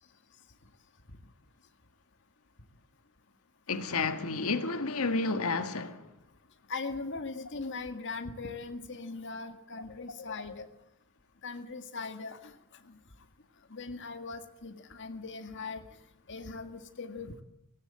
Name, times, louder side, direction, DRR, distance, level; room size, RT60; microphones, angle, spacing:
voice 1, 3.7-6.1, left 3 dB, 75° left, 1.7 m, -31 dB
voice 2, 6.7-10.7 11.4-12.5 13.7-15.8 16.3-17.4, left 3 dB, 55° left, 1.8 m, -40 dB
17.5 x 17.5 x 8.7 m
head